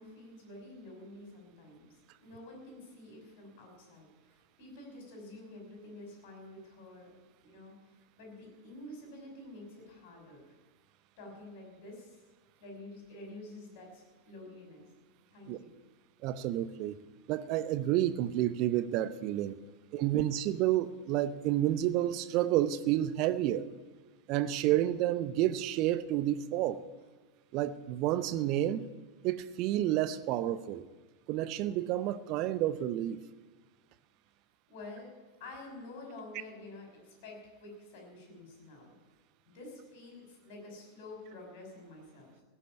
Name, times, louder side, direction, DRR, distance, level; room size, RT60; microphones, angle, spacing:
voice 1, 0.0-1.9 2.2-7.1 7.4-7.7 8.2-10.4 11.2-12.2 12.6-14.9 15.3-15.7 34.7-35.1 35.4-38.9 39.4-42.4, left 2 dB, 50° left, 1 dB, 5.9 m, -49 dB
voice 2, 16.2-17.0 17.3-19.6 19.9-23.7 24.3-26.8 27.5-28.9 29.2-30.9 31.3-33.2, right 13 dB, 40° right, 15 dB, 0.7 m, -30 dB
16.5 x 7.3 x 9.8 m, 1.4 s
figure-of-eight pair, 90°, 0 cm